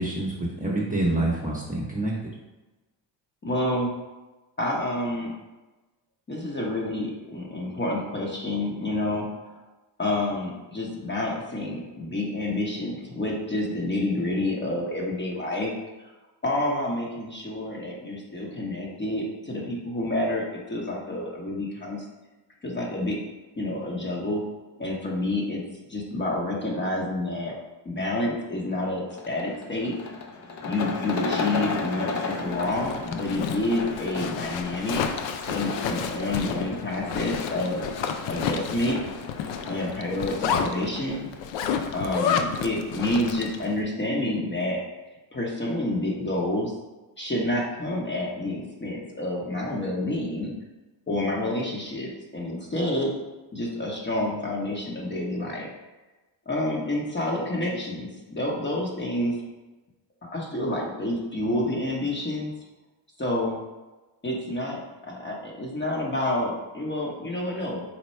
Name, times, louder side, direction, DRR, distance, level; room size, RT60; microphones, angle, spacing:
voice 1, 0.0-2.1, right 1 dB, 20° right, -5 dB, 0.8 m, -27 dB
voice 2, 3.4-3.9 4.6-5.3 6.3-9.5 10.0-15.7 16.4-22.0 22.6-23.2 23.6-24.4 24.8-25.6 25.9-27.5 27.8-29.9 30.6-35.0 35.5-37.8 38.3-39.0 39.7-41.3 41.9-44.8 45.3-46.7 47.2-50.5 51.1-53.1 53.5-55.7 56.5-59.4 60.2-62.5 63.2-63.6 64.2-67.8, left 1 dB, 25° left, -3 dB, 0.9 m, -28 dB
sound 1, 29.1-41.4, left 4 dB, 40° left, 0.6 m, -35 dB
Zipper (clothing), 32.5-43.7, left 7 dB, 85° left, 0.5 m, -31 dB
4.3 x 2.2 x 4.2 m, 1.1 s
cardioid pair, 80°, 44 cm